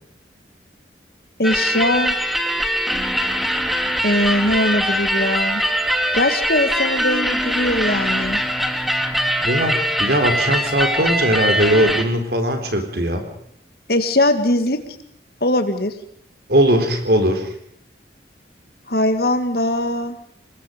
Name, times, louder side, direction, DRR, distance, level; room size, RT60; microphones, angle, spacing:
voice 1, 1.4-2.1 4.0-5.6 6.1-8.4 13.9-14.8 15.4-15.9 18.9-20.1, left 1 dB, 55° left, 9 dB, 2.1 m, -20 dB
sound 1, 1.4-12.0, equal, ahead, 1.5 m, -22 dB
voice 2, 9.4-13.3 16.5-17.5, right 1 dB, 60° right, 6 dB, 3.9 m, -19 dB
26.5 x 21.0 x 5.3 m, 0.66 s
head